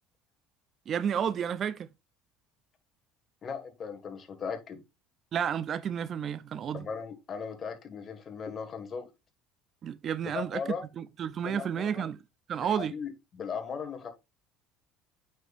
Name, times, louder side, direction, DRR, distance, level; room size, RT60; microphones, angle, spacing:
voice 1, 0.9-1.9 5.3-6.9 9.8-10.6 11.0-12.2 12.5-12.9, right 8 dB, 40° right, 0.4 m, -31 dB
voice 2, 3.4-4.8 6.7-9.1 10.3-10.8 11.4-12.1 12.6-14.1, left 6 dB, 35° left, 1.7 m, -38 dB
8.9 x 5.3 x 2.5 m
supercardioid pair, 110°, 0 cm